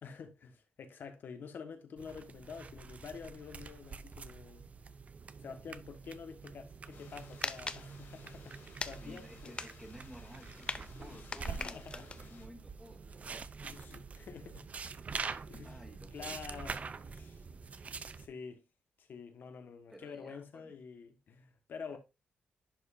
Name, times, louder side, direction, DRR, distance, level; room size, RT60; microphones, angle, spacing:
voice 1, 0.0-4.6 5.4-8.6 8.8-9.6 10.9-11.9 13.6-14.6 15.5-15.8 16.1-17.4 18.2-18.6 19.0-22.0, left 6 dB, 60° left, 1.4 m, -48 dB
sound 1, 2.0-18.3, right 5 dB, 35° right, 0.5 m, -46 dB
sound 2, 6.9-12.5, left 4 dB, 90° left, 3.0 m, -59 dB
sound 3, 6.9-7.8 8.8-9.1 9.4-12.2, left 4 dB, 25° left, 0.5 m, -41 dB
voice 2, 9.0-13.3 15.6-16.9 19.9-20.7 21.9-22.0, equal, 5° right, 1.8 m, -54 dB
10.5 x 5.2 x 2.6 m
wide cardioid pair, 140°, 4 cm